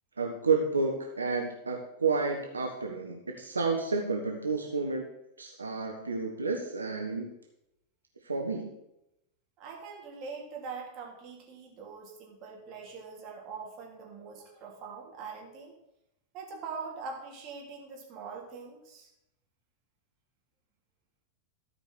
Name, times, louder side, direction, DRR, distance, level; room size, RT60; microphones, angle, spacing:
voice 1, 0.2-5.1 5.4-7.3 8.2-8.7, right 4 dB, 75° right, 2 dB, 1.0 m, -30 dB
voice 2, 9.6-15.7 16.3-19.1, right 5 dB, 35° right, -1 dB, 2.9 m, -43 dB
12.5 x 5.1 x 6.2 m, 0.86 s
figure-of-eight pair, 90°, 0 cm